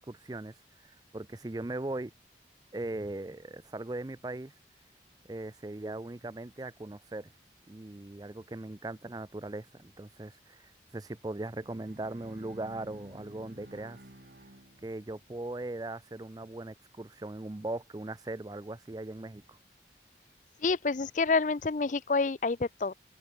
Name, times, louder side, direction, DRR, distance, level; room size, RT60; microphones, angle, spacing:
voice 1, 0.1-0.5 0.8-2.1 2.7-4.5 5.3-7.3 7.7-14.0 14.8-19.6, right 2 dB, 20° right, 0.5 m, -39 dB
Bowed string instrument, 11.4-15.4, right 1 dB, 60° right, 2.7 m, -52 dB
voice 2, 20.6-22.9, left 4 dB, 45° left, 0.5 m, -28 dB
head